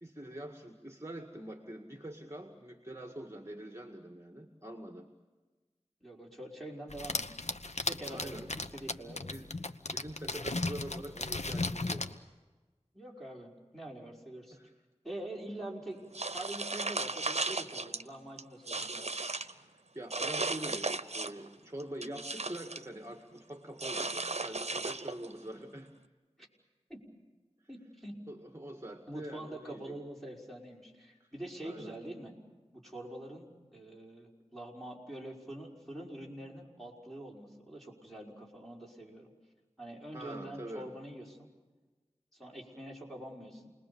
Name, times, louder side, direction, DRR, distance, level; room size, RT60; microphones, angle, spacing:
voice 1, 0.0-5.1 7.9-8.5 9.2-12.2 14.5-14.7 19.6-25.9 28.3-30.0 31.2-31.3 31.6-32.0 40.1-40.9, right 1 dB, 20° right, 5 dB, 1.9 m, -45 dB
voice 2, 6.0-7.4 7.8-9.2 12.9-14.6 15.0-19.5 26.4-26.5 26.9-27.0 27.7-28.1 29.1-32.3 32.7-33.5 33.7-39.3 39.8-41.5 42.3-43.7, right 1 dB, ahead, -1 dB, 5.6 m, -45 dB
sound 1, 6.9-12.1, left 2 dB, 70° left, 1.0 m, -36 dB
sound 2, 16.1-18.0 18.4-19.5 20.1-21.5 21.8-22.9 23.8-25.3, right 3 dB, 65° right, 0.9 m, -35 dB
29.0 x 21.0 x 7.1 m, 1.3 s
wide cardioid pair, 40°, 12 cm